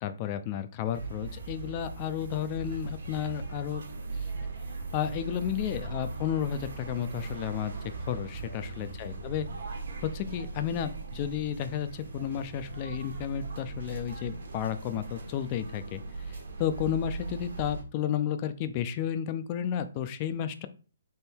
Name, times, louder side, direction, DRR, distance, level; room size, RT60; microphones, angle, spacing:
voice 1, 0.0-3.8 4.4-4.5 4.9-9.5 10.0-16.0 16.3-20.7, left 10 dB, 30° left, 10 dB, 0.5 m, -32 dB
sound 1, 0.9-17.8, right 3 dB, 75° right, 1.4 m, -39 dB
3.5 x 3.3 x 4.5 m, 0.37 s
hypercardioid pair, 150°, 0 cm